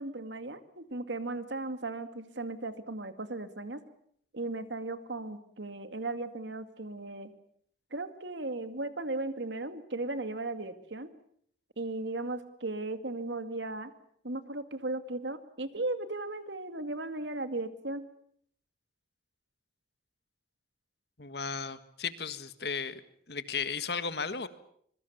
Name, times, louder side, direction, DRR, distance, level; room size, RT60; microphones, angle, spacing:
voice 1, 0.0-3.8 4.3-7.3 7.9-11.1 11.8-13.9 14.2-18.0, right 2 dB, 85° right, 10 dB, 2.3 m, -36 dB
voice 2, 21.2-23.0 23.3-24.5, left 5 dB, 65° left, 12 dB, 1.7 m, -35 dB
26.0 x 22.5 x 7.2 m, 0.66 s
head